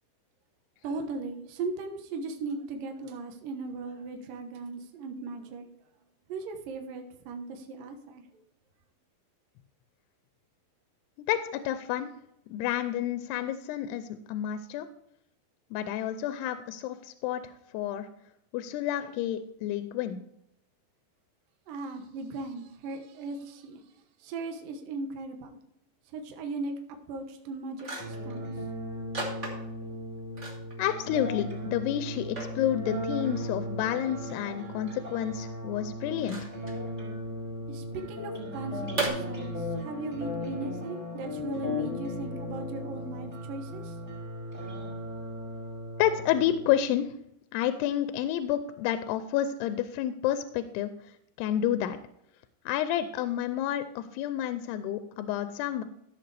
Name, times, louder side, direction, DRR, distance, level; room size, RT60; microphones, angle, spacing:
voice 1, 0.8-5.7 6.3-8.2 21.7-25.6 26.1-26.7 27.1-28.5 37.7-44.0, right 3 dB, 65° right, 4 dB, 2.6 m, -38 dB
voice 2, 11.3-12.1 12.5-14.9 15.7-18.1 18.5-20.2 30.8-36.4 46.0-47.1 47.5-52.0 52.7-55.8, left 11 dB, 85° left, 10 dB, 2.7 m, -30 dB
sound 1, 27.8-28.3 29.1-29.9 30.3-31.1 31.4-31.5 32.1-32.6 34.0-34.1 36.2-36.8 39.0-39.1, right 3 dB, 30° right, 1.3 m, -35 dB
sound 2, 28.0-46.9, left 1 dB, 15° right, 4.2 m, -37 dB
14.5 x 7.4 x 3.3 m, 0.77 s
omnidirectional pair, 4.6 m